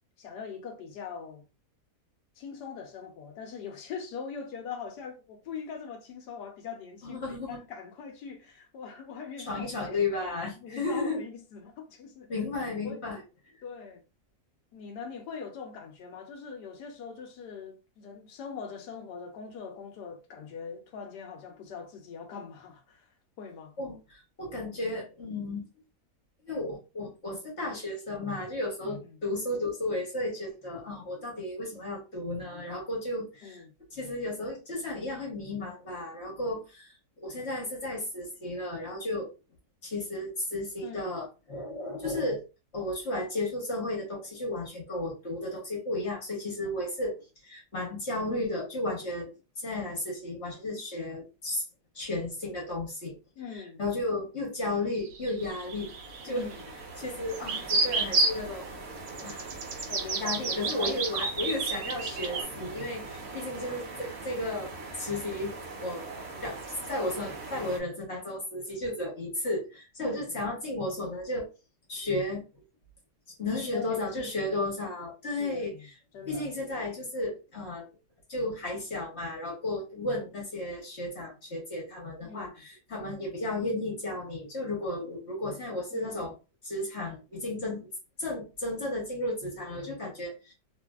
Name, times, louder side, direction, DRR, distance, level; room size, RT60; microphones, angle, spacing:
voice 1, 0.2-1.4 2.4-10.0 10.6-12.3 12.8-13.0 13.6-14.0 14.7-23.1 23.4-23.7 28.8-29.2 33.4-33.7 40.8-41.1 53.4-53.8 56.3-56.7 59.2-59.4 59.9-61.0 67.5-67.8 70.0-70.4 73.7-74.6 75.4-75.9 76.1-76.5 82.2-82.7 85.9-86.3, left 6 dB, 80° left, 1.2 m, -42 dB
voice 2, 7.0-7.6 9.4-11.2 12.3-13.2 23.8-25.6 26.5-33.6 33.9-39.3 39.8-42.4 42.7-49.3 49.6-51.6 51.9-53.2 53.5-55.9 56.2-56.5 57.0-58.8 59.2-59.5 60.2-65.5 65.8-66.0 66.3-66.6 66.9-71.5 71.9-72.4 73.4-75.9 76.3-77.9 78.3-86.3 86.6-87.9 88.2-90.5, left 2 dB, 45° left, 1.2 m, -33 dB
sound 1, 54.9-56.6 57.3-58.4 59.1-62.4, right 3 dB, 70° right, 1.2 m, -30 dB
sound 2, 55.4-67.8, right 3 dB, 50° right, 0.9 m, -42 dB
2.9 x 2.6 x 2.3 m
omnidirectional pair, 1.8 m